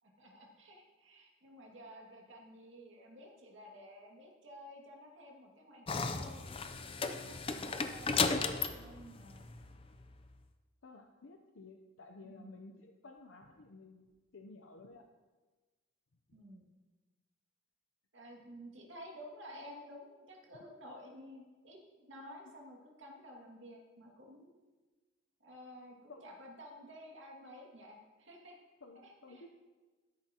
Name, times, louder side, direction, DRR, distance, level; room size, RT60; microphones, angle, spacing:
voice 1, 0.0-6.6 7.0-9.5 12.2-12.6 16.3-16.7 18.1-24.6 25.4-28.6 29.0-29.4, equal, 75° right, -1 dB, 2.2 m, -53 dB
sound 1, 5.9-10.1, left 4 dB, 30° left, 0.5 m, -35 dB
voice 2, 10.8-15.0 26.1-26.3 28.8-29.5, left 3 dB, 85° left, 3 dB, 0.7 m, -54 dB
13.0 x 10.5 x 2.9 m, 1.3 s
head